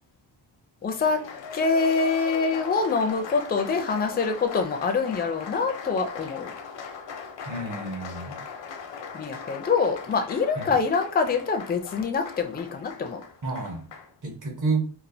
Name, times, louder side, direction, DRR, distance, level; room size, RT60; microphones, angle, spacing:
voice 1, 0.8-1.2 1.5-6.5 9.1-13.2, left 4 dB, 25° left, 5 dB, 0.4 m, -25 dB
Applause, 0.9-14.1, left 6 dB, 90° left, 0.8 m, -40 dB
voice 2, 7.5-8.4 10.6-10.7 13.4-13.9 14.2-14.8, right 3 dB, 45° right, 2 dB, 1.0 m, -29 dB
4.2 x 2.4 x 2.7 m, 0.37 s
wide cardioid pair, 155°, 42 cm